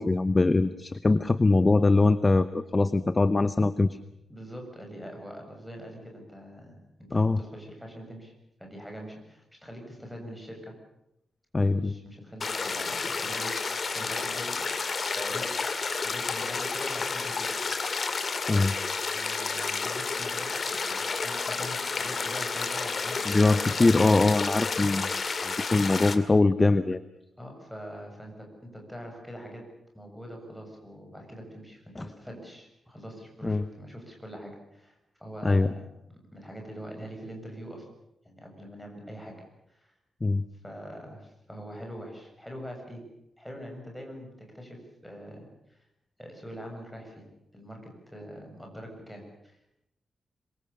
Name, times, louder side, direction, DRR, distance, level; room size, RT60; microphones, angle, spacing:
voice 1, 0.0-4.0 7.1-7.4 11.5-11.9 18.5-18.7 23.3-27.0 32.0-32.1 33.4-33.6 35.4-35.7 40.2-40.4, left 3 dB, 20° left, 13 dB, 0.8 m, -23 dB
voice 2, 4.3-8.3 8.6-10.8 11.6-14.6 15.1-15.5 15.9-17.6 19.1-20.5 20.9-23.6 27.4-29.7 29.9-37.9 38.2-39.4 39.7-39.9 40.6-43.0 43.4-45.8 46.2-47.3 47.5-49.6, equal, ahead, 2 dB, 7.1 m, -43 dB
sound 1, 12.4-26.2, left 4 dB, 40° left, 2.3 m, -31 dB
26.5 x 23.5 x 6.9 m, 0.83 s
wide cardioid pair, 150°, 0 cm